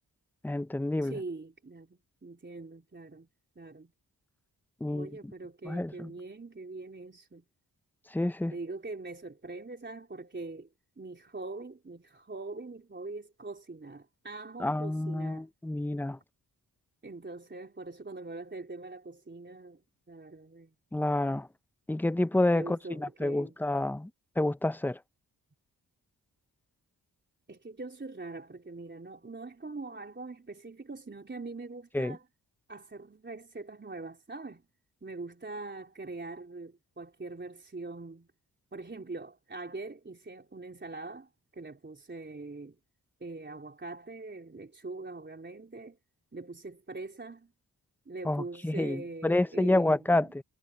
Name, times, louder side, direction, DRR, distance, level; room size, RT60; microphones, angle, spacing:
voice 1, 0.4-1.2 4.8-5.1 5.7-6.1 8.1-8.5 14.6-16.2 20.9-21.5 21.9-24.1 24.4-25.0 31.9-32.2 48.3-50.4, left 1 dB, 5° left, 0.6 m, -28 dB
voice 2, 1.0-3.3 3.6-3.9 4.9-7.5 8.5-10.7 11.0-15.5 17.0-19.8 20.1-20.7 22.5-23.6 27.5-32.3 32.7-34.7 35.0-38.3 38.7-42.8 43.2-46.0 46.3-47.5 48.1-50.3, right 3 dB, 30° right, 3.8 m, -43 dB
wide cardioid pair, 90°, 39 cm